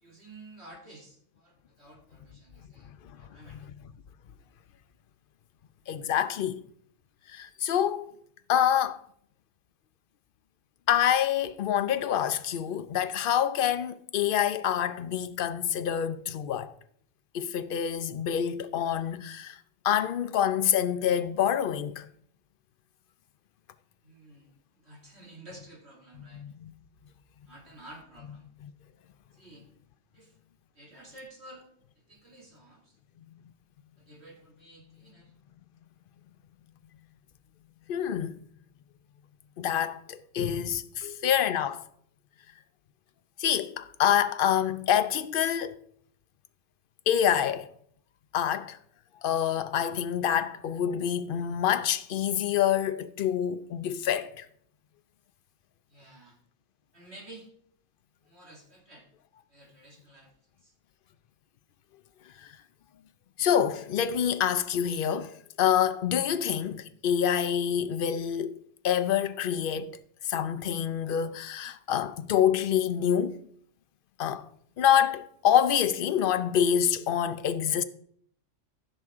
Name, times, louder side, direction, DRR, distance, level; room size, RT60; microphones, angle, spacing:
voice 1, 0.0-3.7 24.0-26.4 27.5-28.5 29.3-29.7 30.1-30.4 30.7-31.6 32.0-32.9 34.0-35.3 41.0-41.2 55.9-56.4 56.9-57.5 58.2-59.1 59.5-60.3 60.6-60.7, right 1 dB, 60° right, 2.9 m, -51 dB
voice 2, 5.9-6.6 7.3-8.2 8.5-9.0 10.9-16.7 17.3-19.6 19.8-22.1 26.3-26.7 37.9-38.4 39.6-40.9 41.2-41.8 43.4-45.8 47.1-47.7 48.3-48.8 49.2-54.5 62.4-62.5 63.4-70.0 70.2-73.4 74.2-74.5 74.8-77.8, left 9 dB, 55° left, 0.7 m, -26 dB
15.0 x 6.6 x 3.6 m
omnidirectional pair, 1.3 m